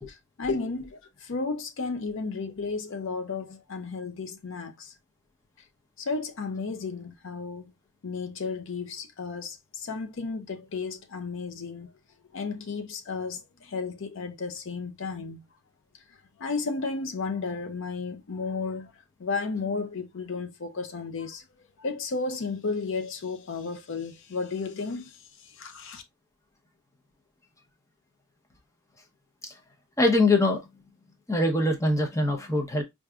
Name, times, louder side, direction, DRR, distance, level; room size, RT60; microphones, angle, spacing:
voice 1, 0.1-4.9 6.0-7.7 8.0-11.9 12.3-15.4 16.4-21.4 21.8-26.0, left 4 dB, 55° left, 0.5 m, -33 dB
voice 2, 30.0-30.6 31.3-32.8, left 2 dB, 15° left, 0.6 m, -23 dB
4.7 x 2.6 x 2.3 m
head